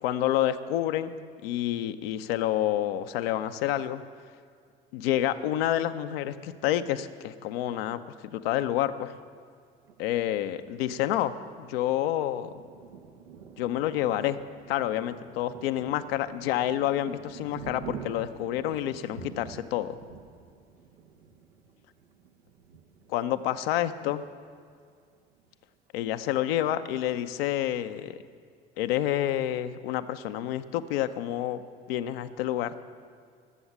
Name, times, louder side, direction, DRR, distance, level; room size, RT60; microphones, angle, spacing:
voice 1, 0.0-1.1 1.4-4.0 4.9-8.0 8.3-9.2 10.0-12.5 13.6-14.4 14.7-20.0 23.1-24.3 25.9-28.2 28.8-31.6 31.9-32.7, left 12 dB, 70° left, 10 dB, 0.7 m, -28 dB
Thunder, 9.9-24.2 24.7-24.8 25.1-25.7, right 6 dB, 80° right, 1.0 m, -47 dB
19.5 x 7.9 x 7.3 m, 2.2 s
figure-of-eight pair, 50°, 31 cm